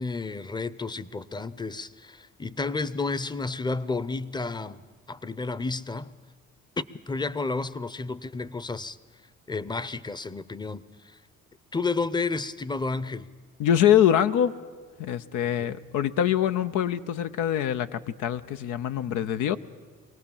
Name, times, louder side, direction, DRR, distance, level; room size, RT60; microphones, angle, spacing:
voice 1, 0.0-4.8 5.1-6.1 6.8-9.0 9.5-11.2 11.7-13.3 15.6-15.7, left 3 dB, 15° left, 0.7 m, -31 dB
voice 2, 13.6-14.5 15.0-19.6, left 10 dB, 85° left, 0.7 m, -24 dB
24.0 x 18.5 x 7.2 m
cardioid pair, 90°, 30 cm